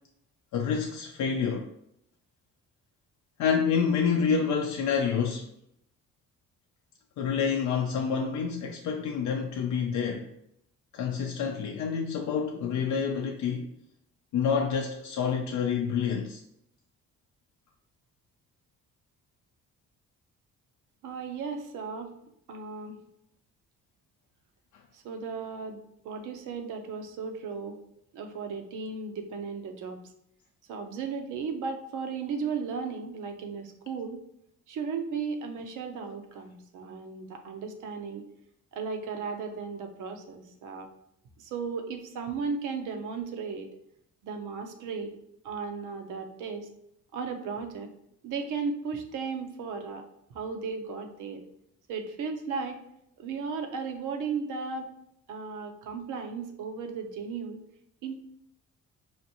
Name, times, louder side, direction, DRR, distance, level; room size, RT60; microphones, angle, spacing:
voice 1, 0.5-1.7 3.4-5.5 7.2-10.3 10.9-13.7 14.3-16.4, left 6 dB, 75° left, 0.5 m, -28 dB
voice 2, 21.0-22.1 22.5-23.0 24.9-25.8 26.0-27.8 28.1-30.0 30.7-34.2 34.7-38.2 38.7-40.9 41.4-43.7 44.2-45.1 45.4-46.7 47.1-47.9 48.2-50.0 50.3-51.4 51.9-52.8 53.2-54.9 55.3-57.6 58.0-58.2, right 5 dB, 85° right, 0.7 m, -35 dB
4.9 x 2.6 x 2.8 m
cardioid pair, 90°, 30 cm